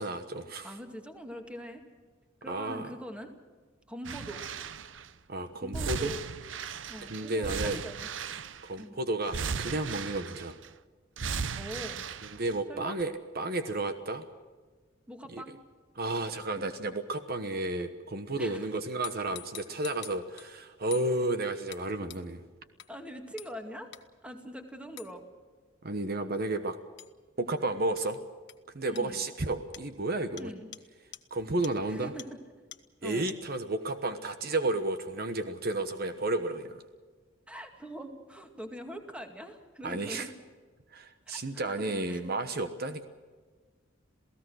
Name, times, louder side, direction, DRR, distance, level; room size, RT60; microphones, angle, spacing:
voice 1, 0.0-0.7 2.5-2.9 5.3-6.1 7.1-7.8 8.6-10.6 12.3-14.2 15.3-15.4 16.0-22.4 25.8-26.8 27.4-28.2 28.7-30.5 31.3-32.1 33.0-36.8 39.8-40.3 40.9-43.1, right 2 dB, 50° right, 9 dB, 1.2 m, -32 dB
voice 2, 0.6-1.8 2.4-3.3 3.9-4.4 5.5-6.2 6.9-8.1 8.8-9.0 11.6-12.1 12.7-13.0 15.1-15.6 18.4-18.7 22.9-23.9 24.2-25.3 28.9-29.2 30.4-30.7 31.9-32.4 33.0-33.3 37.5-40.3 41.3-42.2, equal, 5° right, 5 dB, 2.2 m, -43 dB
sound 1, 4.0-5.1 5.7-8.8 9.2-10.7 11.2-12.6 13.0-13.1, right 6 dB, 75° right, 0.8 m, -36 dB
sound 2, 19.0-20.5 20.9-21.1 21.7-21.8 22.1-22.2 22.8-22.9 23.4-23.5 23.9-24.0 25.0-25.1 27.0-27.1 28.0-28.1 28.5-28.6 29.0-29.1 29.7-29.9 30.4-30.5 30.7-30.8 31.1-31.2 31.6-31.7 32.2-32.3 32.7-32.8 33.3-33.4, left 14 dB, 65° left, 1.2 m, -45 dB
28.0 x 17.5 x 6.4 m, 1.4 s
head